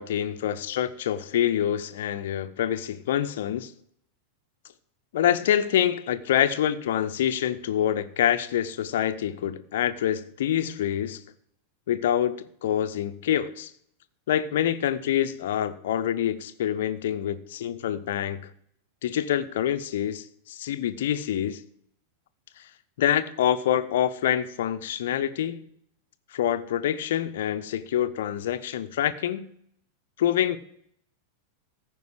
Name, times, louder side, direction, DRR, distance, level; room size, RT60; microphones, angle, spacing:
voice 1, 0.0-3.7 5.1-11.2 11.9-13.7 14.3-18.5 19.0-21.6 22.6-22.7 23.0-25.7 26.3-29.5 30.2-30.6, left 10 dB, 55° left, 0.7 m, -26 dB
14.5 x 5.4 x 7.7 m
figure-of-eight pair, 90°, 0 cm